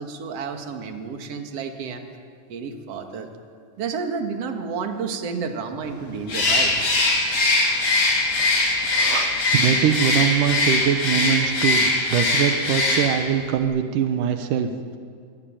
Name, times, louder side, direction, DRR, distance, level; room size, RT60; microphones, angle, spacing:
voice 1, 0.0-2.1 2.5-3.3 3.8-6.7, right 5 dB, 55° right, 5 dB, 2.8 m, -30 dB
Bird, 6.3-13.3, left 2 dB, 50° left, 5.1 m, -21 dB
voice 2, 8.9-15.0, right 9 dB, 85° right, 7 dB, 2.7 m, -23 dB
26.0 x 21.0 x 9.0 m, 2.2 s
omnidirectional pair, 3.6 m